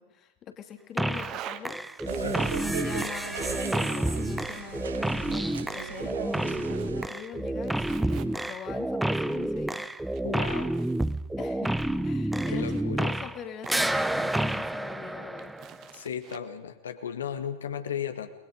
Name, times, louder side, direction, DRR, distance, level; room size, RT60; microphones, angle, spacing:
voice 1, 0.0-2.2 2.6-9.9 11.4-11.7 12.0-15.5, left 8 dB, 30° left, 6 dB, 2.4 m, -43 dB
sound 1, 1.0-1.4 1.6-13.4 13.7-15.9, right 1 dB, 5° right, 0.8 m, -29 dB
sound 2, 1.1-1.6 2.0-3.0 3.4-4.5 4.9-6.9 7.2-8.7 9.3-11.2 11.8-13.0 13.6-14.9 15.4-16.4, right 11 dB, 35° right, 1.4 m, -47 dB
sound 3, 2.1-7.1, right 8 dB, 65° right, 1.0 m, -39 dB
voice 2, 10.2-10.7 12.5-13.1 15.9-18.3, left 8 dB, 65° left, 8 dB, 1.8 m, -35 dB
30.0 x 21.0 x 5.2 m, 0.94 s
figure-of-eight pair, 90°, 0 cm